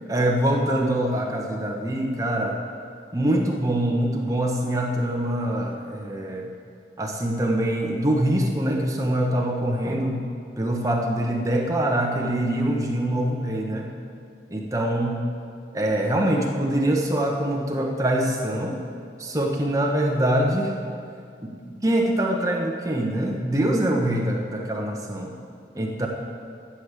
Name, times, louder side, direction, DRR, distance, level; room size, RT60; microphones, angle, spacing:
voice 1, 0.1-2.6 3.1-6.5 7.0-10.2 10.6-13.9 14.5-15.2 15.7-18.8 19.2-20.7 21.4-25.4 25.7-26.1, right 1 dB, 20° right, 0 dB, 1.1 m, -24 dB
11.5 x 7.2 x 8.3 m, 2.3 s
head